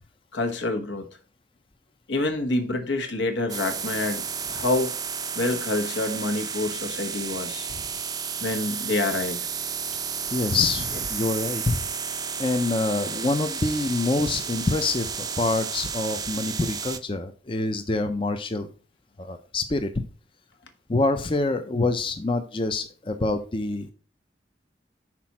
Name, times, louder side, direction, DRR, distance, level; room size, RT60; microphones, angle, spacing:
voice 1, 0.3-1.1 2.1-4.2 4.5-4.9 5.3-7.7 8.4-9.5, left 2 dB, 80° left, 1.2 m, -27 dB
sound 1, 3.5-17.0, right 6 dB, 20° right, 0.5 m, -32 dB
voice 2, 10.3-11.8 12.4-18.7 19.2-19.9 20.9-23.9, left 3 dB, 30° left, 0.5 m, -26 dB
6.0 x 4.2 x 5.8 m
head